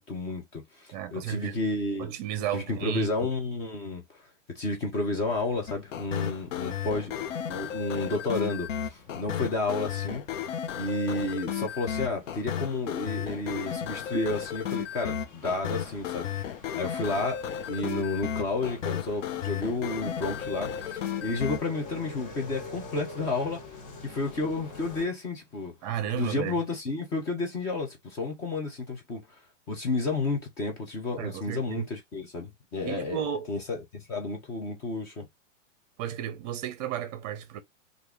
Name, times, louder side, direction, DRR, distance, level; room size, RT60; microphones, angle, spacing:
voice 1, 0.0-2.1 2.5-4.0 4.5-7.1 7.5-10.2 10.7-23.7 24.0-25.7 26.1-29.2 29.7-33.2 33.5-35.3, left 2 dB, 10° left, 0.4 m, -31 dB
voice 2, 0.9-1.6 2.0-3.1 25.8-26.6 31.2-31.9 32.8-33.5 36.0-37.6, right 10 dB, 35° right, 0.7 m, -33 dB
sound 1, 5.1-25.1, left 3 dB, 40° left, 1.1 m, -48 dB
sound 2, 5.7-21.6, left 9 dB, 70° left, 0.7 m, -34 dB
3.0 x 2.5 x 3.5 m
hypercardioid pair, 150°, 38 cm